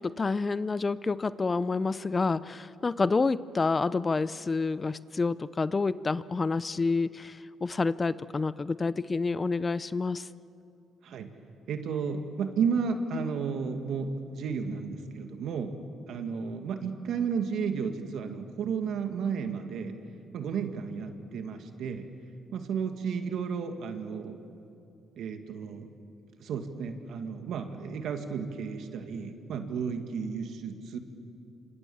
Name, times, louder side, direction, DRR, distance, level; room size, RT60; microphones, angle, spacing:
voice 1, 0.0-7.3 7.6-10.2, left 4 dB, 30° left, 17 dB, 0.6 m, -28 dB
voice 2, 11.7-15.7 16.1-20.0 20.3-22.1 22.5-24.4 25.2-25.9 26.4-31.0, right 6 dB, 75° right, 6 dB, 2.1 m, -33 dB
27.5 x 25.5 x 7.2 m, 2.6 s
cardioid pair, 90°, 0 cm